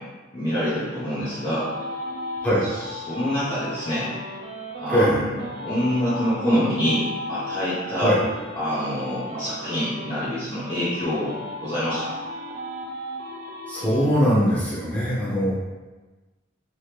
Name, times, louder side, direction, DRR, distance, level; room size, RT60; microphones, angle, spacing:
voice 1, 0.3-1.7 3.1-4.2 4.8-8.1 8.6-11.3 11.6-12.1, equal, 25° left, -11 dB, 0.8 m, -26 dB
sound 1, 0.7-5.0 5.4-10.3 10.6-14.0, left 1 dB, 55° right, 0.7 m, -36 dB
voice 2, 4.9-5.2 8.0-8.2 13.7-15.5, equal, 5° left, -9 dB, 1.1 m, -21 dB
3.0 x 2.9 x 3.3 m, 1.2 s
head